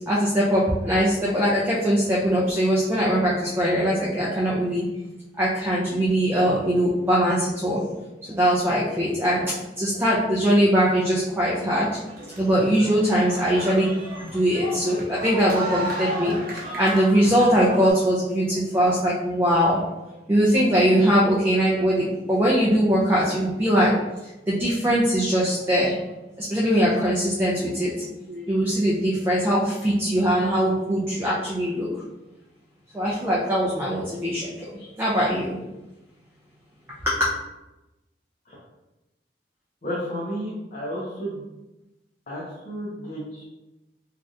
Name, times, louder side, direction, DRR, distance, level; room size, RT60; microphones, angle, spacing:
voice 1, 0.1-4.8 5.4-7.8 8.3-9.4 9.8-11.9 12.4-13.9 14.3-16.4 16.8-19.8 20.3-23.9 24.5-26.0 26.5-31.9 32.9-34.5 35.0-35.6 37.0-37.3, equal, 15° right, -6 dB, 0.4 m, -21 dB
sound 1, 11.2-17.9, right 1 dB, 55° right, 0.8 m, -34 dB
voice 2, 39.8-41.4 42.3-43.4, equal, 45° left, -7 dB, 0.7 m, -32 dB
3.2 x 2.4 x 2.6 m, 1.0 s
head